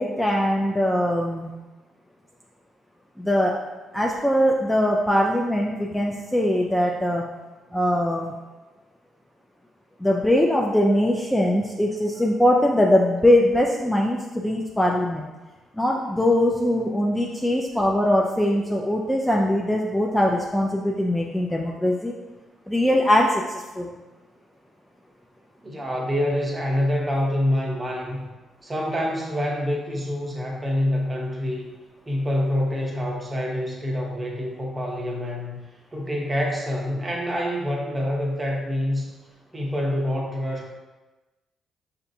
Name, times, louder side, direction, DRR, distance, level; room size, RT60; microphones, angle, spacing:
voice 1, 0.0-1.5 3.2-3.6 3.9-7.3 7.7-8.3 10.0-15.2 15.8-22.1 22.7-23.9, left 1 dB, 10° left, -1 dB, 0.4 m, -21 dB
voice 2, 25.6-28.3 28.6-31.7 32.1-35.6 35.9-39.1 39.5-40.7, left 1 dB, 20° right, -1 dB, 0.9 m, -26 dB
5.6 x 2.5 x 2.6 m, 1.2 s
cardioid pair, 90°, 0 cm